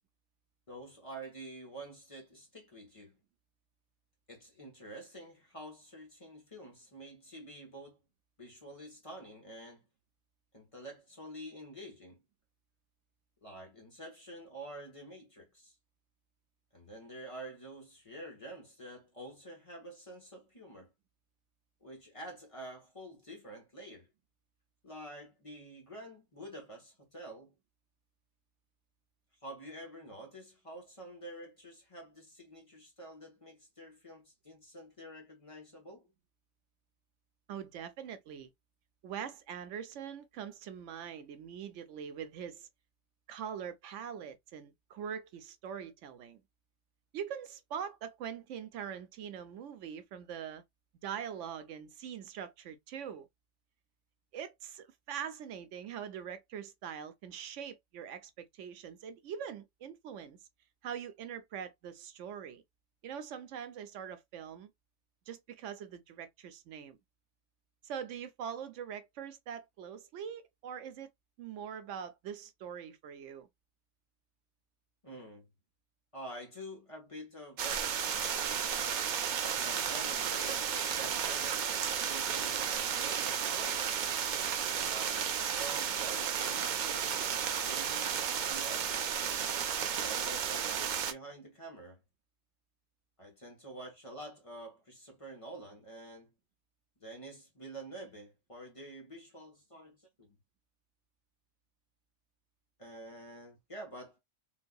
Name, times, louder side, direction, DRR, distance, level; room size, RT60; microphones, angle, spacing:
voice 1, 0.7-3.2 4.3-8.0 8.4-9.8 10.5-12.2 13.4-15.8 16.7-20.9 21.8-24.1 24.8-27.5 29.4-36.1 75.0-75.5 76.1-78.3 79.4-81.6 82.0-83.8 84.8-87.3 87.6-89.0 90.0-92.0 93.2-96.3 97.0-100.4 102.8-104.2, right 1 dB, 30° left, 1.1 m, -48 dB
voice 2, 37.5-38.5 39.0-42.7 43.3-46.4 47.1-50.6 51.0-53.3 54.3-60.4 60.8-62.6 63.0-64.7 65.3-67.0 67.8-71.1 71.4-73.5, right 8 dB, 80° right, 0.9 m, -43 dB
sound 1, 77.6-91.1, right 8 dB, 60° right, 0.5 m, -33 dB
3.8 x 2.6 x 2.2 m
omnidirectional pair, 1.3 m